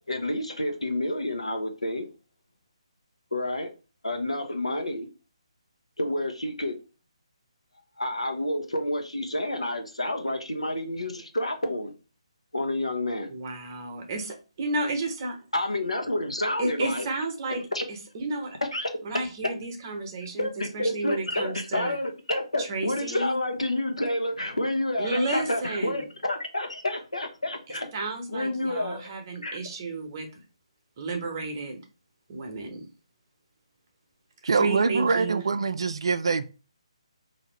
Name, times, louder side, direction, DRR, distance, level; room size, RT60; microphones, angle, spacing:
voice 1, 0.1-2.1 3.3-3.7 4.0-5.1 6.0-6.8 8.0-11.9 12.5-13.3 15.5-17.1 17.5-17.8 18.6-18.9 19.4-19.5 20.4-27.9 28.3-29.0 29.4-29.6, left 1 dB, 80° left, 0.9 m, -29 dB
voice 2, 13.3-15.4 16.6-17.6 17.9-18.6 19.0-20.5 20.7-22.0 22.6-23.4 25.0-26.0 27.9-30.3 31.0-31.8 32.3-32.8 34.5-35.4, right 2 dB, 30° right, 0.9 m, -32 dB
voice 3, 34.4-36.4, right 4 dB, 55° right, 0.4 m, -24 dB
4.6 x 2.7 x 3.1 m
figure-of-eight pair, 145°, 3 cm